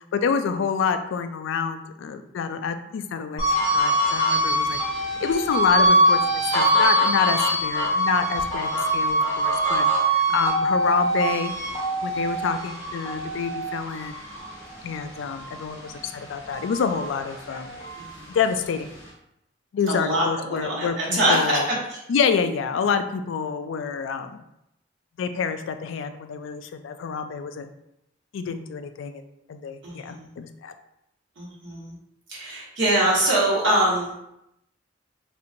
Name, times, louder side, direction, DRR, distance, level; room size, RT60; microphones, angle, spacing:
voice 1, 0.1-4.8 5.2-6.2 6.5-11.5 12.0-14.2 14.8-17.7 18.3-18.9 19.7-21.7 22.1-24.4 25.2-27.7 28.3-29.2 29.5-30.7, left 6 dB, 75° left, 8 dB, 0.3 m, -27 dB
sound 1, 3.4-16.0 16.4-18.1, right 1 dB, 25° left, 1.5 m, -23 dB
voice 2, 18.0-18.4 19.9-21.6 21.9-22.0 29.8-30.2 31.4-31.9 32.3-34.1, right 1 dB, 75° right, -5 dB, 1.4 m, -23 dB
4.3 x 2.5 x 2.6 m, 0.81 s
head